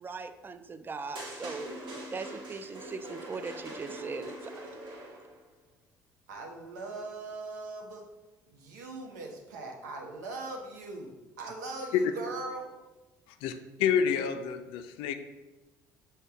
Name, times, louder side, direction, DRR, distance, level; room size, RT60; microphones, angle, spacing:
voice 1, 0.0-1.7 2.1-4.7, right 4 dB, 20° right, 10 dB, 0.3 m, -39 dB
sound 1, 1.1-5.4, right 1 dB, 50° right, 1.2 m, -43 dB
voice 2, 6.3-8.0 8.5-12.7, right 2 dB, 75° right, 1 dB, 0.7 m, -40 dB
voice 3, 13.8-15.1, left 7 dB, 65° left, 8 dB, 0.4 m, -28 dB
6.5 x 2.2 x 3.4 m, 1.1 s
hypercardioid pair, 55°, 10 cm